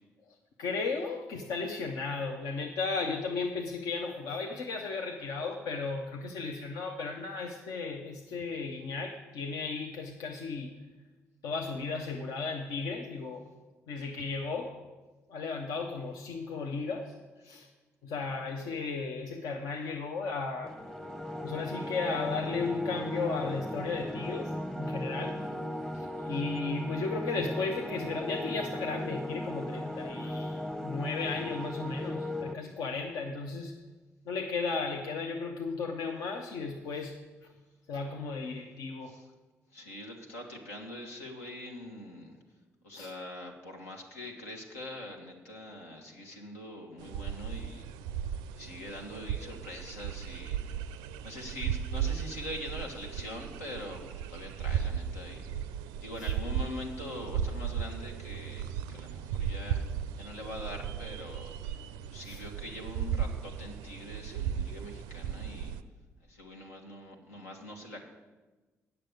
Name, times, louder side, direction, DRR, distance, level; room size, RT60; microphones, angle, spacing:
voice 1, 0.6-10.7 11.4-13.5 13.9-14.8 15.3-17.1 17.4-17.7 18.0-20.8 21.4-25.4 25.9-33.8 34.3-37.1 37.9-39.2 42.9-43.1 56.2-56.3 62.2-62.4, left 4 dB, 65° left, 2 dB, 0.8 m, -35 dB
sound 1, 20.6-32.5, left 1 dB, 5° left, 0.8 m, -37 dB
voice 2, 39.7-42.4 42.8-47.9 48.5-50.8 51.2-55.6 56.0-59.8 60.2-61.7 62.1-65.8 66.3-68.0, left 1 dB, 85° left, 0 dB, 1.2 m, -43 dB
sound 2, 47.0-65.8, right 9 dB, 70° right, 0.4 m, -36 dB
8.9 x 6.7 x 8.3 m, 1.2 s
figure-of-eight pair, 40°, 7 cm